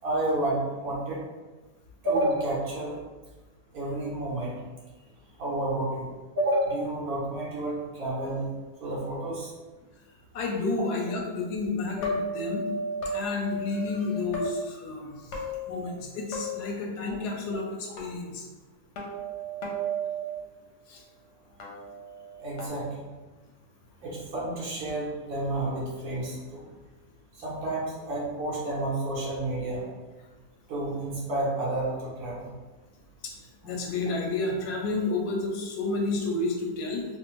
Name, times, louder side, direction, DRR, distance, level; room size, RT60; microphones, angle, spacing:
voice 1, 0.0-1.2 2.0-2.9 3.7-4.5 5.4-6.1 6.4-8.5 8.8-9.5 11.1-11.2 13.8-14.2 22.4-23.1 24.0-26.6 27.3-29.9 30.7-32.5 33.6-33.8, right 1 dB, 70° right, -6 dB, 1.4 m, -30 dB
voice 2, 10.3-12.7 13.1-15.4 15.7-18.5 20.9-21.0 33.2-33.3 33.6-37.1, left 3 dB, 85° left, 1 dB, 1.2 m, -31 dB
sound 1, 12.0-14.5 15.3-16.0 16.3-16.7 18.0-18.1 19.0-20.2 21.6-22.7, right 1 dB, 60° left, 0.8 m, -34 dB
3.4 x 2.1 x 3.0 m, 1.2 s
omnidirectional pair, 1.7 m